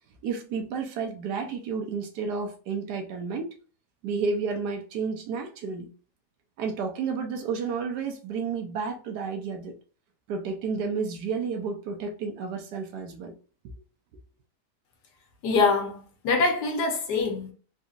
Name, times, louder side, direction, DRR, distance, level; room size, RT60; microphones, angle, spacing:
voice 1, 0.2-3.5 4.0-5.9 6.6-9.7 10.3-13.3, right 5 dB, 80° right, 1.3 m, -31 dB
voice 2, 15.4-17.5, left 4 dB, 75° left, 1.5 m, -24 dB
4.0 x 2.6 x 2.4 m
omnidirectional pair, 1.8 m